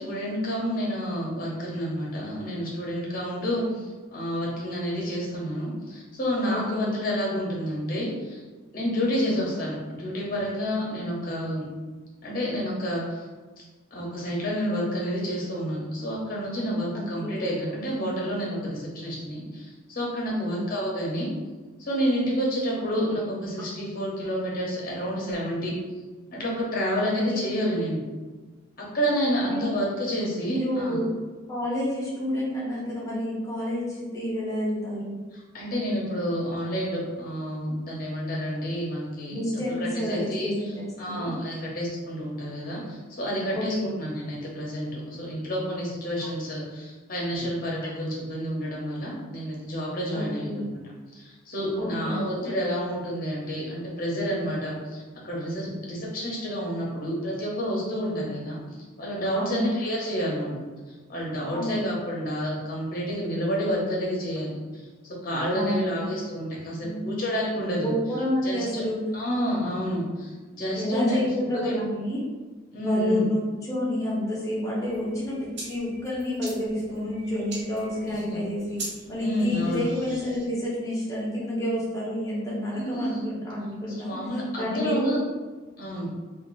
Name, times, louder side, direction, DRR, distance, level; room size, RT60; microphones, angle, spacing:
voice 1, 0.0-8.4 8.7-11.7 12.2-13.3 13.9-21.3 21.8-25.7 26.3-28.0 28.8-31.0 35.3-39.4 39.8-40.5 41.0-50.7 51.1-58.6 59.0-60.6 60.9-64.6 65.0-67.9 68.4-68.8 69.1-71.2 71.5-71.8 72.7-73.2 78.1-78.4 79.2-79.9 82.8-83.1 83.9-85.2 85.8-86.1, equal, 40° left, -4 dB, 1.0 m, -29 dB
voice 2, 6.5-6.9 16.9-17.3 20.3-20.6 27.3-27.4 29.5-29.7 30.4-31.1 31.5-35.2 39.3-41.3 43.5-43.9 50.1-50.7 51.8-52.5 59.3-59.7 61.5-61.9 65.5-66.2 66.8-67.2 67.6-69.0 70.7-72.2 72.8-78.8 79.1-84.2 84.6-85.2, left 1 dB, 15° left, -7 dB, 1.0 m, -29 dB
sound 1, 74.8-80.5, right 2 dB, 55° right, 1.0 m, -42 dB
2.8 x 2.6 x 4.0 m, 1.3 s
head